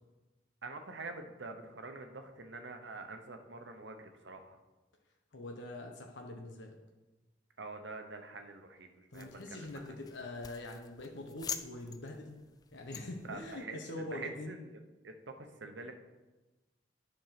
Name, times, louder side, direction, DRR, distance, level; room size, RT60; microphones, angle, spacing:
voice 1, 0.6-4.6 7.6-9.8 13.3-13.8 14.1-14.6 15.0-15.9, right 3 dB, 75° right, 6 dB, 0.9 m, -46 dB
voice 2, 5.3-6.8 9.1-12.3 12.7-14.6, left 2 dB, 80° left, 2 dB, 1.0 m, -44 dB
sound 1, 9.1-13.6, left 6 dB, 20° left, 0.3 m, -47 dB
9.4 x 4.5 x 5.8 m, 1.1 s
head